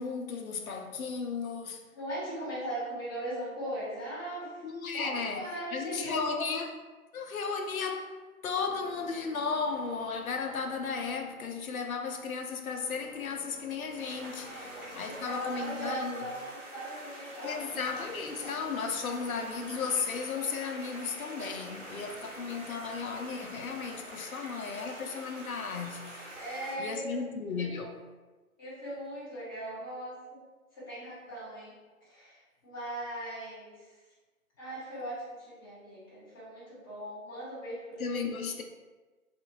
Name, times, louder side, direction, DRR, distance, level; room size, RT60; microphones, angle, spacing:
voice 1, 0.0-1.8 4.6-5.4 5.7-6.7 7.1-8.2 8.4-16.3 17.4-26.3 26.8-27.9 38.0-38.6, left 5 dB, 75° left, 0.5 m, -35 dB
voice 2, 1.9-4.7 4.9-6.4 14.4-17.7 18.1-18.2 26.3-27.2 27.5-27.8 28.6-30.4 30.8-31.8 32.0-33.9 34.6-38.3, right 1 dB, 15° left, 0.8 m, -39 dB
sound 1, 8.5-24.0, equal, 45° left, 0.8 m, -54 dB
sound 2, 13.9-26.7, right 1 dB, 45° right, 1.1 m, -46 dB
2.4 x 2.4 x 2.7 m
figure-of-eight pair, 140°, 43 cm